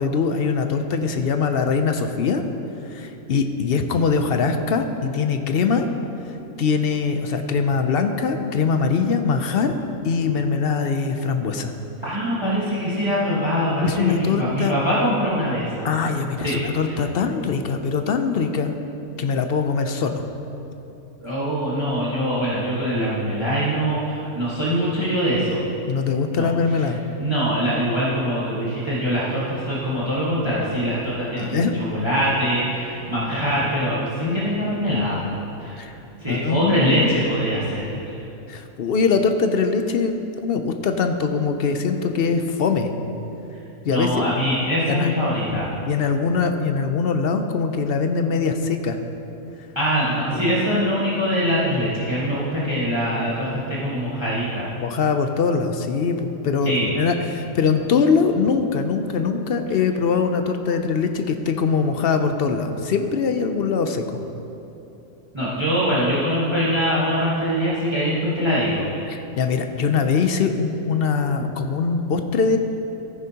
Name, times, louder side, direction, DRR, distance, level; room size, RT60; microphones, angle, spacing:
voice 1, 0.0-2.4 2.9-5.9 6.6-9.7 10.0-11.7 13.8-14.7 15.8-18.7 19.2-20.2 25.9-27.0 31.4-31.8 34.2-34.4 35.8-35.9 36.3-37.1 38.5-42.9 43.8-44.3 44.9-45.1 45.9-49.0 50.3-50.5 54.8-64.0 69.1-72.6, left 5 dB, 60° left, 6 dB, 0.6 m, -22 dB
voice 2, 12.0-15.9 16.4-16.6 16.9-17.0 21.2-25.6 26.3-26.5 27.2-35.2 35.6-35.8 36.2-38.1 43.9-45.7 49.7-54.6 56.6-56.9 65.3-68.8, equal, 20° right, -9 dB, 1.5 m, -23 dB
14.0 x 9.7 x 2.8 m, 2.9 s
omnidirectional pair, 1.5 m